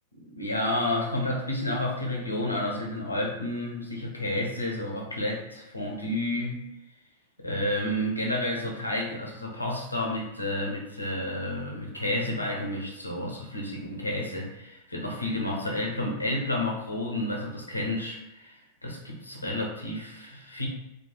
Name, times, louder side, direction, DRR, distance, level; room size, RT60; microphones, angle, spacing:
voice 1, 0.3-6.6 7.4-20.7, left 1 dB, 85° left, -1 dB, 0.6 m, -30 dB
3.0 x 2.2 x 2.2 m, 0.93 s
figure-of-eight pair, 90°, 0 cm